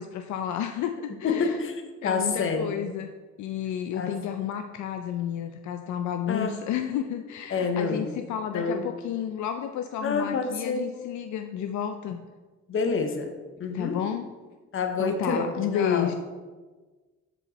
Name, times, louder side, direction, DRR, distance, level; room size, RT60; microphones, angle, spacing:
voice 1, 0.0-1.6 2.0-3.1 3.4-12.2 13.7-14.3 15.0-16.1, left 9 dB, 75° left, 7 dB, 0.5 m, -31 dB
voice 2, 1.2-2.7 3.9-4.2 6.3-6.6 7.5-8.1 8.5-8.8 10.0-10.9 12.7-13.3 13.6-14.0 14.7-16.1, left 4 dB, 45° left, 6 dB, 0.9 m, -28 dB
7.0 x 4.4 x 4.0 m, 1.3 s
cardioid pair, 90°, 30 cm